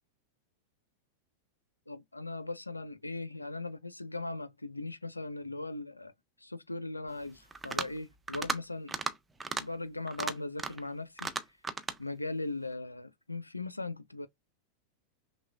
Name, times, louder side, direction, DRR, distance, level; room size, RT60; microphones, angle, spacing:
voice 1, 1.9-6.1 6.4-9.0 9.6-11.3 12.0-14.3, left 2 dB, 85° left, 0.4 m, -39 dB
sound 1, 7.5-8.0 8.3-8.6 8.9-9.1 9.4-9.6 10.1-10.9 11.2-12.0, right 4 dB, 10° right, 0.6 m, -35 dB
5.9 x 2.2 x 2.3 m
figure-of-eight pair, 90°, 0 cm